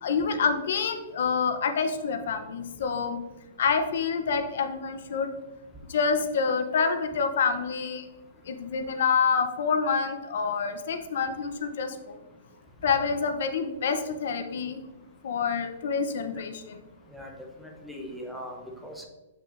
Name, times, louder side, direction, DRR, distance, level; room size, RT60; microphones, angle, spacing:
voice 1, 0.0-3.2 3.6-5.3 5.9-8.1 8.5-12.2 12.8-14.8 15.2-16.8, left 5 dB, 60° left, 7 dB, 0.6 m, -27 dB
voice 2, 17.1-19.1, equal, ahead, 1 dB, 0.6 m, -41 dB
7.1 x 5.7 x 2.5 m, 1.1 s
hypercardioid pair, 170°, 0 cm